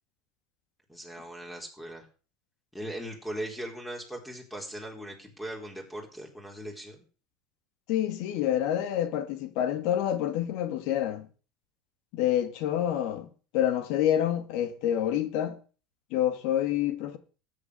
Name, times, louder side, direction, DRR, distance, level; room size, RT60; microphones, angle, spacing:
voice 1, 0.9-2.1 2.7-7.0, right 1 dB, 5° left, 4.4 m, -39 dB
voice 2, 7.9-11.3 12.1-15.6 16.1-17.2, left 11 dB, 65° left, 2.0 m, -27 dB
13.0 x 8.8 x 6.9 m
supercardioid pair, 105°, 0 cm